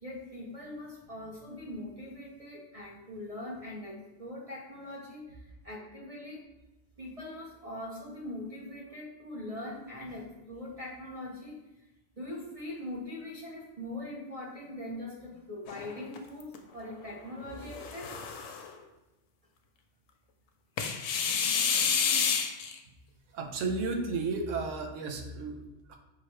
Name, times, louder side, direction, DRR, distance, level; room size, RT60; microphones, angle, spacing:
voice 1, 0.0-6.4 7.0-11.6 12.2-18.2, left 1 dB, 30° right, -4 dB, 0.9 m, -42 dB
sound 1, 15.7-16.6 17.6-18.7 20.8-22.8, left 6 dB, 85° left, 0.9 m, -29 dB
voice 2, 23.3-26.0, right 3 dB, 85° right, 4 dB, 1.0 m, -33 dB
5.8 x 3.0 x 3.1 m, 1.0 s
omnidirectional pair, 1.3 m